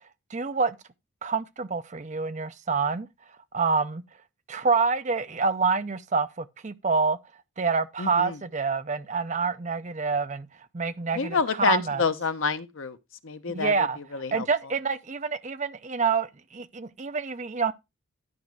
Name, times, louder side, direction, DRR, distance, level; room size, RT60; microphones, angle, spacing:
voice 1, 0.3-0.8 1.2-3.1 3.5-4.0 4.5-7.2 7.6-10.5 10.7-12.0 13.5-14.0 14.3-17.7, right 5 dB, 35° right, 0.6 m, -27 dB
voice 2, 8.0-8.4 11.1-13.0 13.2-14.5, left 5 dB, 65° left, 0.8 m, -28 dB
11.0 x 5.3 x 4.6 m
head